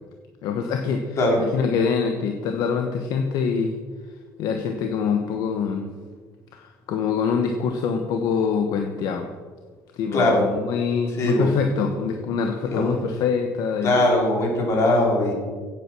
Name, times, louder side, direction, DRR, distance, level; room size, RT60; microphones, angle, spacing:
voice 1, 0.4-3.8 4.4-5.9 6.5-9.3 10.0-13.9, left 6 dB, 60° left, 5 dB, 1.2 m, -25 dB
voice 2, 10.1-10.4 11.1-11.5 12.7-13.0 13.8-15.3, left 1 dB, 40° left, -1 dB, 4.2 m, -20 dB
16.0 x 9.0 x 6.1 m, 1.5 s
cardioid pair, 170°, 7 cm